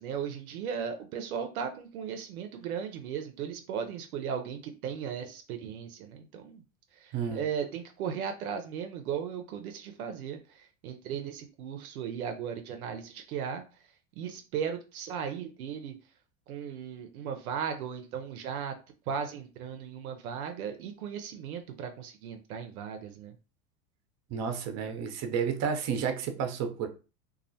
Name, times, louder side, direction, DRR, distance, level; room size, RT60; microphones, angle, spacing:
voice 1, 0.0-6.6 7.0-10.4 10.8-13.6 14.2-15.9 16.5-18.7 19.1-23.3, right 7 dB, 80° right, 0.6 m, -36 dB
voice 2, 7.1-7.4 24.3-26.9, right 6 dB, 40° right, 0.6 m, -31 dB
2.3 x 2.1 x 2.6 m
hypercardioid pair, 90°, 43 cm